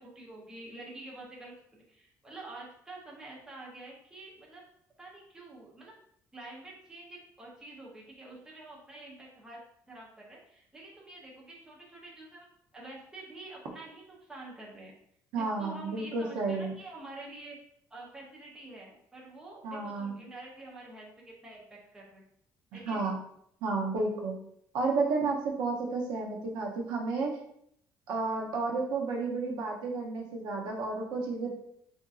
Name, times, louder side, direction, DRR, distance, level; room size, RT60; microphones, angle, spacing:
voice 1, 0.0-4.6 5.0-5.9 6.3-9.6 9.9-12.5 12.7-14.9 15.3-17.6 17.9-22.2 22.7-23.1, right 2 dB, 10° right, -4 dB, 0.6 m, -47 dB
voice 2, 15.3-16.7 19.6-20.2 22.9-23.2 23.6-24.4 24.7-27.3 28.1-31.5, right 3 dB, 90° right, 0 dB, 0.7 m, -31 dB
3.6 x 2.6 x 2.4 m, 0.71 s
cardioid pair, 175°, 7 cm